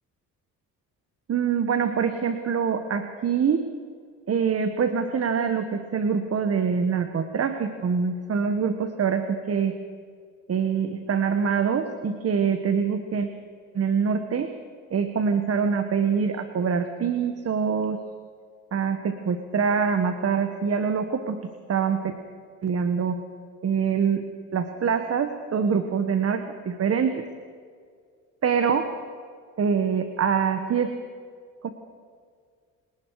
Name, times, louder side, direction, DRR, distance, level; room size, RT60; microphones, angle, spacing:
voice 1, 1.3-3.7 4.3-9.8 10.5-13.3 13.7-14.5 14.9-18.0 18.7-21.4 21.7-22.1 22.6-23.2 23.6-24.2 24.5-27.3 28.4-28.9 29.6-31.0 31.6-31.7, right 6 dB, 45° right, 8 dB, 1.5 m, -24 dB
29.5 x 18.5 x 4.9 m, 2.1 s
cardioid pair, 90°, 33 cm